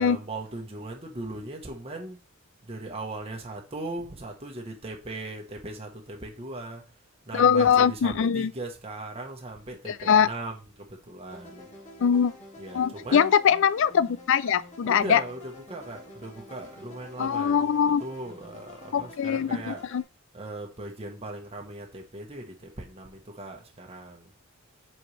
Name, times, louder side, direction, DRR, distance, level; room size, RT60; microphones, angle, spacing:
voice 1, 0.0-2.2 2.6-6.9 7.3-11.7 12.6-13.3 14.8-17.6 18.0-19.8 20.3-24.3, right 2 dB, 25° right, 1.1 m, -38 dB
voice 2, 7.3-8.5 9.9-10.3 12.0-12.3 12.7-15.2 17.2-18.0 18.9-20.0, left 7 dB, 60° left, 0.4 m, -22 dB
sound 1, 11.3-20.0, left 1 dB, 35° left, 2.0 m, -48 dB
7.8 x 4.3 x 3.3 m
head